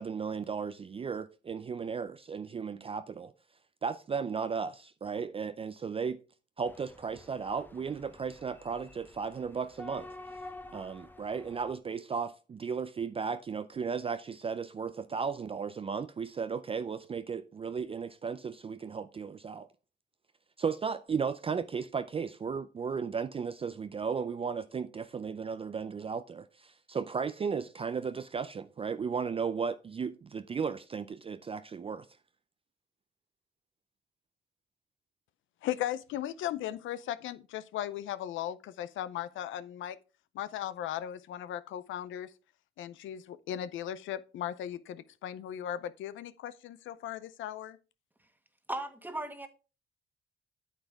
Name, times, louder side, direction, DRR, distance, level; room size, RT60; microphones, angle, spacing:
voice 1, 0.0-3.3 3.8-6.2 6.6-10.1 10.7-19.7 20.6-32.1, right 6 dB, 30° right, 0.4 m, -35 dB
sound 1, 6.6-11.7, left 2 dB, 10° left, 0.9 m, -49 dB
voice 2, 35.6-40.0 40.3-42.3 42.8-47.8, left 11 dB, 80° left, 0.6 m, -37 dB
voice 3, 48.7-49.5, right 1 dB, 10° right, 1.4 m, -36 dB
9.0 x 7.2 x 3.5 m
cardioid pair, 90°, 20 cm